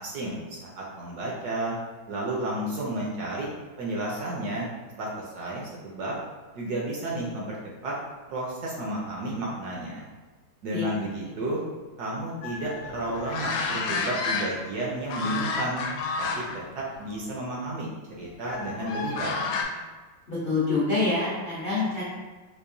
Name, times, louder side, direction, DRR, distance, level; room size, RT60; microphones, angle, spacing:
voice 1, 0.0-1.8 2.1-3.5 3.8-4.7 5.0-6.1 6.6-7.9 8.3-10.0 10.6-11.6 12.0-15.8 16.2-17.9 18.2-19.6, right 1 dB, 65° right, -4 dB, 1.0 m, -32 dB
sound 1, 12.4-14.8 15.1-16.6 17.0-17.2 18.5-19.6, left 4 dB, 90° left, 1.4 m, -30 dB
voice 2, 20.3-22.0, left 3 dB, 70° left, -7 dB, 0.5 m, -26 dB
4.6 x 2.5 x 2.6 m, 1.3 s
omnidirectional pair, 2.2 m